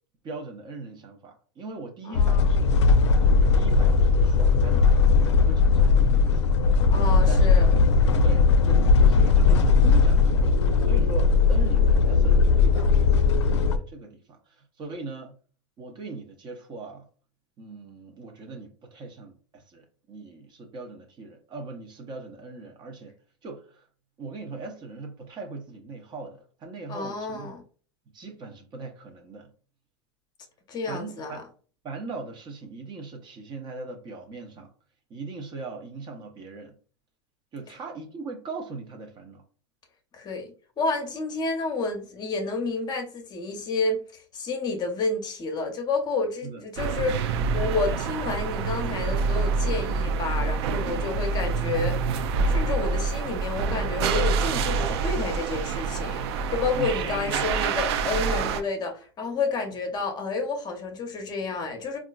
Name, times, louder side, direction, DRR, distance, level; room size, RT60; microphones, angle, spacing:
voice 1, 0.2-2.7 3.4-6.4 7.3-7.7 8.2-15.4 15.8-17.1 17.6-23.1 23.4-23.9 24.2-27.5 28.1-29.5 30.9-31.4 31.8-34.7 35.1-36.8 37.5-39.4 46.4-46.6 56.7-57.4 58.4-58.6, right 3 dB, 30° right, 0.7 m, -40 dB
voice 2, 2.0-2.6 6.9-7.7 26.9-27.6 30.7-31.4 40.1-52.0 52.4-62.0, left 3 dB, 30° left, 0.7 m, -30 dB
sound 1, 2.1-13.8, left 4 dB, 90° left, 0.4 m, -19 dB
sound 2, 46.8-58.6, right 4 dB, 65° right, 0.4 m, -26 dB
3.7 x 2.4 x 2.3 m
hypercardioid pair, 115°, 14 cm